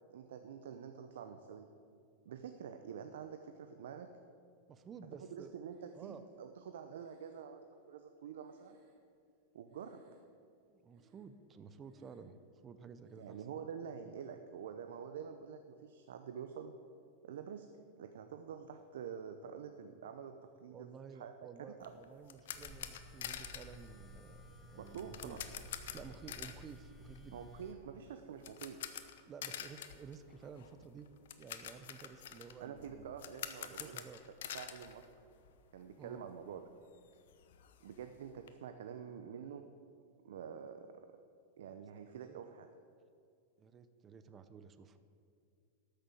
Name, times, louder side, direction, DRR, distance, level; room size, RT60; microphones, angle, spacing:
voice 1, 0.1-1.7 2.2-4.1 5.3-8.8 9.5-10.0 13.1-16.7 17.2-17.7 18.0-20.9 21.2-21.3 21.6-21.9 24.8-25.4 27.3-28.8 32.6-34.0 34.5-35.1 35.7-36.6 37.8-39.7 40.2-40.9 41.6-42.7, right 7 dB, 80° right, 7 dB, 0.7 m, -47 dB
voice 2, 4.7-5.6 5.9-6.3 10.7-12.4 12.6-13.4 20.7-25.4 25.9-27.4 29.3-31.1 31.4-33.1 33.7-34.2 36.0-36.2 41.7-41.8 42.3-42.4 43.6-45.0, right 6 dB, 25° right, 11 dB, 0.6 m, -53 dB
Breathing, 5.7-6.4 7.0-9.4 9.7-10.5 10.9-11.5 11.8-12.4 13.0-13.5, right 2 dB, 50° right, 2.2 m, -69 dB
sound 1, 21.8-35.8 36.0-36.2 36.6-36.7 36.9-38.5, left 10 dB, 75° left, 0.9 m, -48 dB
sound 2, 22.5-27.7, equal, 10° left, 1.5 m, -55 dB
12.5 x 6.8 x 7.7 m, 2.4 s
supercardioid pair, 135°, 0 cm